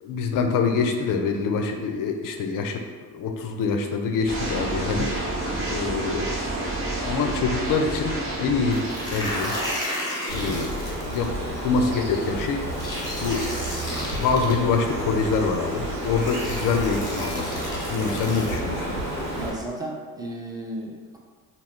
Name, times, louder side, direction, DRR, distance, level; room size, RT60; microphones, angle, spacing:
voice 1, 0.0-2.8 3.1-5.1 5.7-6.3 7.0-8.9 9.1-9.5 10.3-10.7 11.1-11.3 11.6-12.6 13.2-13.5 14.1-17.6 17.9-19.0, left 4 dB, 45° left, 4 dB, 0.5 m, -25 dB
sound 1, 4.3-9.7, right 1 dB, 25° right, 0.9 m, -29 dB
sound 2, 8.7-11.3 12.7-14.5 15.6-15.7 16.1-18.6, left 1 dB, 10° left, 1.0 m, -33 dB
Bird, 10.3-19.5, right 1 dB, 75° right, 0.9 m, -30 dB
voice 2, 19.3-21.2, right 1 dB, 10° right, -2 dB, 0.5 m, -34 dB
2.2 x 2.0 x 3.5 m, 1.5 s
hypercardioid pair, 50°, 47 cm